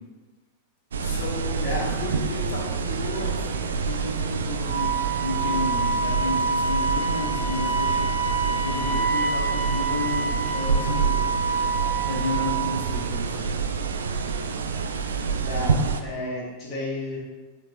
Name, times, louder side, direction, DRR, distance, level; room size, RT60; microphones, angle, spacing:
sound 1, 0.9-16.0, right 5 dB, 65° right, 0.4 m, -27 dB
voice 1, 1.0-4.9 5.2-11.2 12.0-13.5, left 2 dB, 55° left, -2 dB, 1.4 m, -33 dB
voice 2, 1.6-1.9 15.4-17.2, left 1 dB, 30° left, -6 dB, 1.8 m, -31 dB
Wind instrument woodwind instrument, 4.6-12.9, right 3 dB, 30° right, 1.1 m, -27 dB
9.3 x 4.0 x 2.6 m, 1.3 s
figure-of-eight pair, 90°, 0 cm